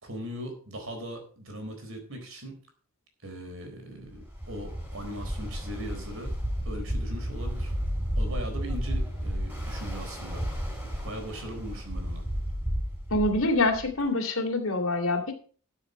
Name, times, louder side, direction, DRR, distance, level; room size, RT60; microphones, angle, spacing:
voice 1, 0.0-2.6 3.2-6.3 6.7-7.7 8.2-10.4 11.0-12.2, equal, 75° right, 4 dB, 4.1 m, -39 dB
Ocean, 4.1-14.0, equal, 10° right, 5.7 m, -32 dB
voice 2, 13.1-15.3, left 2 dB, 75° left, 5 dB, 2.8 m, -25 dB
13.0 x 6.9 x 5.5 m, 0.42 s
head